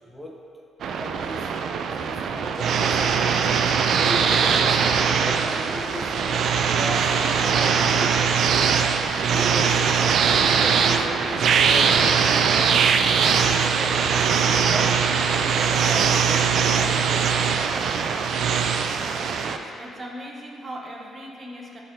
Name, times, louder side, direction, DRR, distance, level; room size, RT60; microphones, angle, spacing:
voice 1, 0.1-0.6 1.0-1.6 2.0-3.6 4.0-6.4 6.7-8.2 9.3-12.9 13.4-15.1 15.4-18.0, equal, 5° left, -2 dB, 0.6 m, -36 dB
sound 1, 0.8-19.6, right 6 dB, 65° right, 0.3 m, -21 dB
sound 2, 5.7-10.8, left 4 dB, 50° left, 0.6 m, -43 dB
voice 2, 19.3-21.8, equal, 35° right, -1 dB, 0.9 m, -39 dB
10.0 x 4.0 x 2.7 m, 2.6 s
cardioid pair, 90°, 0 cm